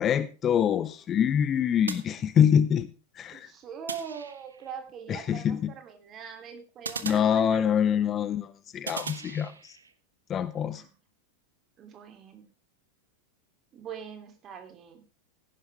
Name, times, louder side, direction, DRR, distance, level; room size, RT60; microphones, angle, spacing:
voice 1, 0.0-2.9 3.2-3.5 5.1-5.7 7.0-9.8 10.3-10.8, left 8 dB, 25° left, 16 dB, 0.6 m, -25 dB
sound 1, 1.9-2.8 3.9-4.8 6.8-8.0 8.9-9.9, right 5 dB, 75° right, 1.2 m, -40 dB
voice 2, 3.3-7.6 10.5-10.9 11.8-12.4 13.7-15.0, right 7 dB, 30° right, 6 dB, 3.0 m, -42 dB
16.0 x 11.0 x 3.5 m, 0.34 s
figure-of-eight pair, 90°, 0 cm